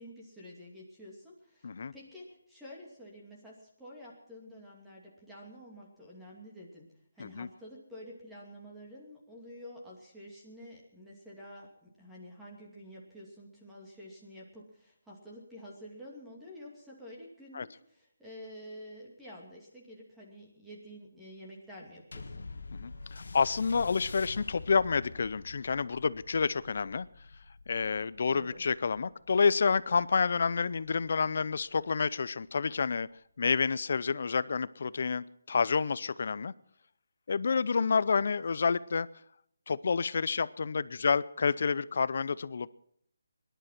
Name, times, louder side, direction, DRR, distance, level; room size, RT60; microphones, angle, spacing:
voice 1, 0.0-6.9 7.1-22.4 28.3-28.6 38.2-38.3, equal, 5° right, -4 dB, 2.6 m, -49 dB
sound 1, 22.1-30.9 31.6-31.7, left 3 dB, 80° left, 1.5 m, -46 dB
voice 2, 22.7-27.1 27.7-33.1 33.4-36.5 37.3-39.1 39.7-42.8, left 5 dB, 50° left, 18 dB, 0.5 m, -29 dB
19.5 x 11.5 x 5.9 m, 0.71 s
hypercardioid pair, 170°, 0 cm